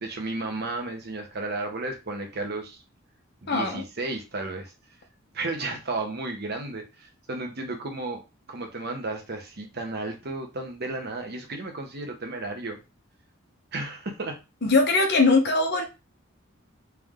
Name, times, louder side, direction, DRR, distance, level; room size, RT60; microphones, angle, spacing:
voice 1, 0.0-2.8 3.4-4.7 5.3-12.8 13.7-14.3, right 2 dB, 55° right, 4 dB, 1.1 m, -33 dB
voice 2, 3.5-3.8 14.6-15.8, left 3 dB, 55° left, 3 dB, 1.0 m, -21 dB
3.5 x 3.4 x 3.7 m, 0.27 s
head